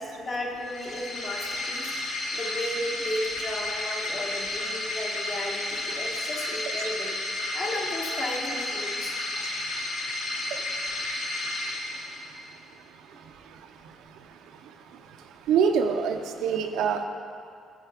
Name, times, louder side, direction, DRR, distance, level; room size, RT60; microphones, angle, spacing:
voice 1, 0.0-1.9 2.3-7.1 7.5-9.2 13.1-13.3, left 1 dB, 45° left, 0 dB, 1.2 m, -34 dB
sound 1, 0.6-12.5, left 1 dB, 70° left, 1.2 m, -32 dB
voice 2, 15.5-17.0, right 6 dB, 90° right, 6 dB, 0.5 m, -24 dB
8.9 x 4.2 x 4.8 m, 2.4 s
cardioid pair, 90°, 0 cm